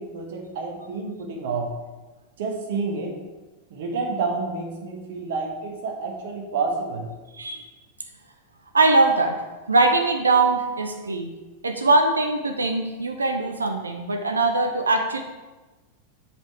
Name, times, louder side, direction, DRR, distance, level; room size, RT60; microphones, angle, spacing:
voice 1, 0.0-1.7 2.4-3.2 3.7-7.1, right 4 dB, 55° right, 1 dB, 1.2 m, -29 dB
voice 2, 7.3-7.7 8.7-9.4 9.7-11.3 11.6-15.2, right 3 dB, 75° right, 5 dB, 0.6 m, -21 dB
7.4 x 5.2 x 4.5 m, 1.2 s
figure-of-eight pair, 90°, 0 cm